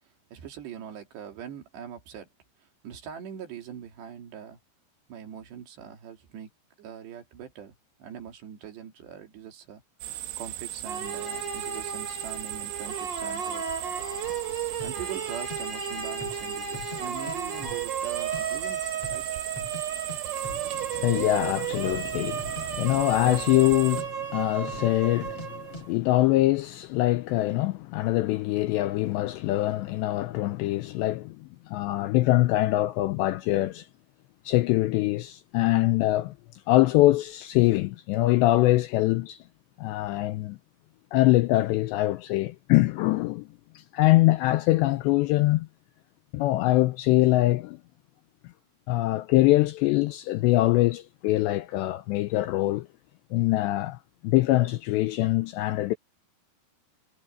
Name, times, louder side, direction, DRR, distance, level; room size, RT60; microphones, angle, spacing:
voice 1, 0.3-2.3 2.8-4.6 5.1-6.5 6.8-7.7 8.0-9.8 10.4-13.6 14.8-18.8 19.1-19.2, right 8 dB, 65° right, 4.6 m, -42 dB
sound 1, 10.0-24.0, right 13 dB, 85° right, 3.9 m, -38 dB
sound 2, 10.9-25.9, right 7 dB, 35° right, 4.0 m, -34 dB
sound 3, 14.8-15.0 15.5-15.6 16.1-16.4 16.7-17.4 17.6-18.4 18.7-18.8 19.0-19.8 20.1-20.2 20.4-20.7 21.0-21.3 21.8-22.1 22.4-22.7 22.9-23.7 24.0-24.1 24.7-24.9 25.2-25.5 25.7-25.9, left 1 dB, 30° left, 8.5 m, -41 dB
voice 2, 20.9-33.9 34.5-36.3 36.7-39.4 39.8-40.6 41.1-43.5 43.8-45.7 46.3-47.8 48.9-52.9 53.3-55.9, left 17 dB, 80° left, 2.6 m, -23 dB
omnidirectional pair, 5.6 m